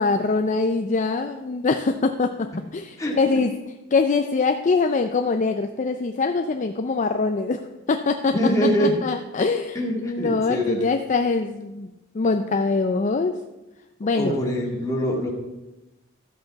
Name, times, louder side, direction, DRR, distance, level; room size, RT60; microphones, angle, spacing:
voice 1, 0.0-3.5 3.9-8.4 8.8-11.9 12.1-13.4 14.0-14.4, left 4 dB, 40° left, 6 dB, 0.5 m, -23 dB
voice 2, 3.0-3.4 8.3-9.0 9.7-10.9 14.2-15.3, equal, 15° left, -2 dB, 2.0 m, -24 dB
12.5 x 7.9 x 4.1 m, 1.0 s
head